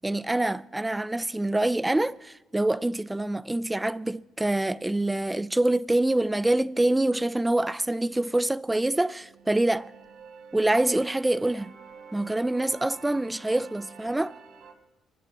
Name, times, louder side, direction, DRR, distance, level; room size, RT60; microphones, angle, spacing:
voice 1, 0.0-9.9 10.5-11.7 12.1-14.3, right 1 dB, 10° right, 0.4 m, -25 dB
sound 1, 9.2-14.7, right 5 dB, 75° right, 3.5 m, -49 dB
25.5 x 16.0 x 3.0 m
cardioid pair, 100°, 0 cm